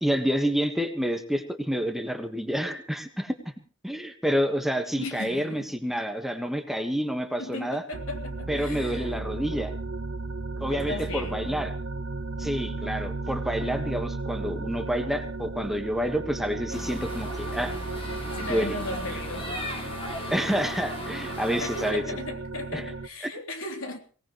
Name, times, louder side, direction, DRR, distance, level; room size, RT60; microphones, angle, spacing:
voice 1, 0.0-3.5 3.8-7.8 8.5-9.7 10.6-11.7 12.4-17.7 18.5-18.8 20.3-22.0 22.7-22.8, equal, ahead, 1.3 m, -28 dB
voice 2, 5.0-5.7 7.4-9.2 10.6-11.7 18.3-19.6 21.6-24.0, left 2 dB, 75° left, 3.1 m, -36 dB
sound 1, 7.9-23.1, right 3 dB, 65° right, 0.9 m, -35 dB
sound 2, 16.7-21.9, left 1 dB, 25° left, 4.3 m, -37 dB
23.5 x 18.0 x 3.1 m
head